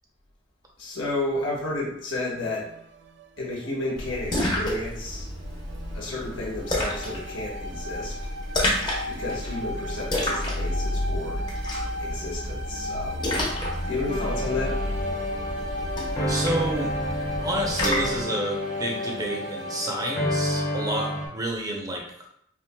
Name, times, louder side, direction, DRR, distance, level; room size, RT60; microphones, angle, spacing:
voice 1, 0.8-2.7 3.4-5.3 5.9-8.3 9.1-11.4 12.0-13.3 13.8-15.0, left 2 dB, 90° left, -5 dB, 1.2 m, -32 dB
sound 1, 2.4-4.5 5.0-19.8, left 1 dB, 60° right, 0.3 m, -38 dB
Splash splatter, 4.0-18.2, left 1 dB, 25° left, 0.8 m, -30 dB
sound 2, 14.1-21.3, left 1 dB, 45° left, 1.2 m, -30 dB
voice 2, 16.3-16.9 17.4-22.3, right 1 dB, 20° right, -1 dB, 0.7 m, -30 dB
4.6 x 3.1 x 2.2 m, 0.73 s
head